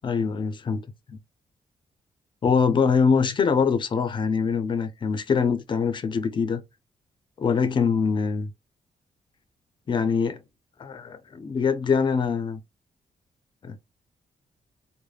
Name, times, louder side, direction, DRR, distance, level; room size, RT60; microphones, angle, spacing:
voice 1, 0.0-0.8 2.4-6.6 7.4-8.5 9.9-10.4 10.8-12.6 13.6-13.8, left 5 dB, 40° left, 0.5 m, -23 dB
3.2 x 2.1 x 2.2 m
cardioid pair, 135°, 13 cm